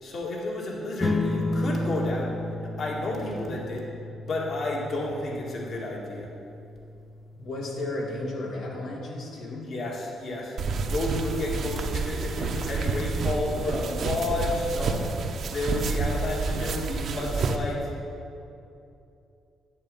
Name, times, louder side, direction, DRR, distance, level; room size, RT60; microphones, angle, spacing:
voice 1, 0.0-2.4 2.8-3.8 4.2-6.3 9.7-15.1 15.5-17.9, left 2 dB, 55° left, -3 dB, 2.2 m, -31 dB
sound 1, 1.0-11.8, left 2 dB, 20° left, 0.7 m, -34 dB
voice 2, 7.3-9.7, left 2 dB, 80° left, -2 dB, 2.3 m, -34 dB
sound 2, 10.6-17.6, right 4 dB, 60° right, 0.8 m, -29 dB
10.0 x 8.1 x 5.5 m, 2.7 s
cardioid pair, 90°, 0 cm